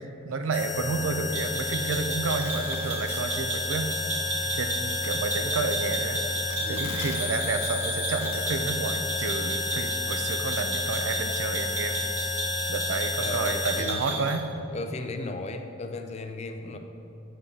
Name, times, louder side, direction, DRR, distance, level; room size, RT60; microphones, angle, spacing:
voice 1, 0.2-4.0 4.4-6.2 6.7-12.0 12.7-14.4, right 3 dB, 70° right, 8 dB, 0.4 m, -30 dB
sound 1, 0.5-13.8, left 3 dB, 60° left, 0.7 m, -31 dB
sound 2, 1.3-14.4, right 2 dB, 35° right, 1.3 m, -34 dB
voice 2, 6.6-6.9 13.2-14.4 14.7-16.8, left 2 dB, 30° left, 6 dB, 0.3 m, -36 dB
6.8 x 5.4 x 3.6 m, 2.8 s
head